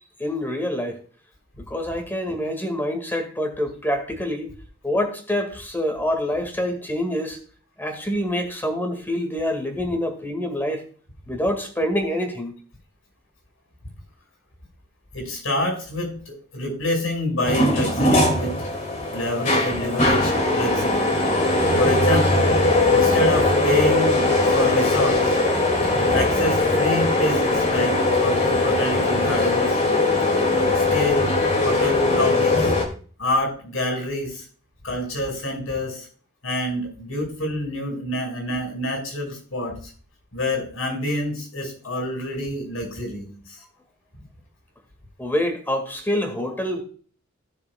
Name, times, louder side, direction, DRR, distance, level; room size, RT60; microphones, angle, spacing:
voice 1, 0.2-1.0 1.7-4.5 4.8-7.4 7.8-10.8 11.3-12.5 45.2-46.8, left 1 dB, 10° left, 1.9 m, -26 dB
voice 2, 15.1-18.5 19.1-21.0 21.8-22.5 22.9-24.3 24.5-25.4 25.9-29.8 30.5-31.3 31.6-32.7 33.2-34.4 34.8-36.1 36.4-39.8 40.3-43.3, left 1 dB, 75° left, 5.2 m, -27 dB
sound 1, 17.4-32.9, left 2 dB, 35° left, 2.3 m, -20 dB
16.0 x 6.9 x 2.3 m
head